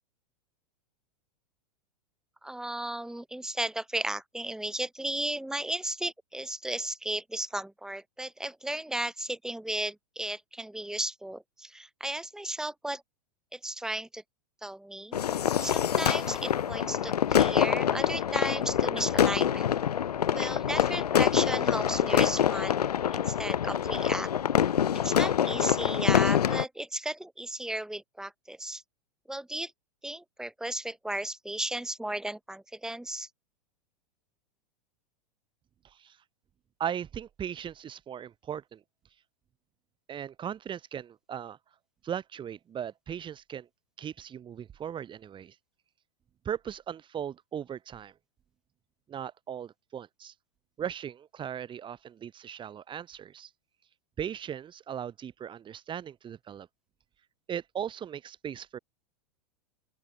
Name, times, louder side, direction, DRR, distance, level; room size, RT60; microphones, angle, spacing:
voice 1, 2.4-13.0 13.5-14.2 14.6-15.2 15.6-19.7 20.3-22.8 23.1-24.3 25.0-28.8 29.3-29.7 30.0-33.3, right 1 dB, 5° right, 5.4 m, -35 dB
sound 1, 15.1-26.6, left 9 dB, 75° left, 0.6 m, -26 dB
voice 2, 36.8-38.8 40.1-41.6 42.0-43.7 44.0-45.5 46.4-48.1 49.1-50.3 50.8-53.5 54.2-56.7 57.5-58.8, right 9 dB, 25° right, 5.8 m, -38 dB
open air
figure-of-eight pair, 95°, 20 cm